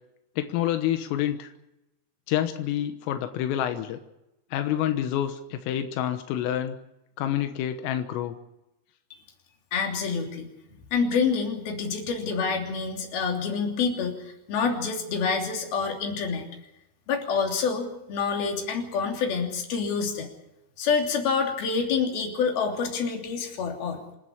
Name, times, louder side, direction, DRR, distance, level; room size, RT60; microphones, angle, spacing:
voice 1, 0.4-1.5 2.3-4.0 4.5-6.8 7.2-8.4, left 11 dB, 90° left, 8 dB, 3.8 m, -28 dB
voice 2, 9.7-10.5 10.9-14.2 14.5-16.5 17.1-20.3 20.8-24.0, left 5 dB, 50° left, 2 dB, 4.6 m, -27 dB
27.0 x 12.0 x 9.9 m, 0.89 s
omnidirectional pair, 5.8 m